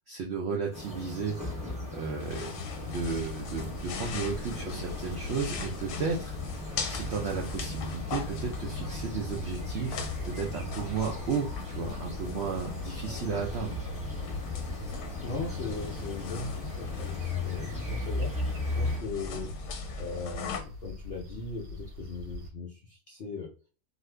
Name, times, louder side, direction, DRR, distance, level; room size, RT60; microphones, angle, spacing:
voice 1, 0.1-1.4 1.9-13.8, right 5 dB, 90° right, 1 dB, 0.5 m, -34 dB
sound 1, 0.7-19.0, left 3 dB, 5° right, 0.5 m, -38 dB
sound 2, 2.2-20.6, left 5 dB, 85° left, 1.3 m, -40 dB
sound 3, 2.8-22.5, right 1 dB, 50° right, 1.1 m, -42 dB
voice 2, 15.2-18.4 18.7-23.5, left 4 dB, 70° left, -2 dB, 0.6 m, -39 dB
2.8 x 2.5 x 3.3 m, 0.38 s
omnidirectional pair, 1.8 m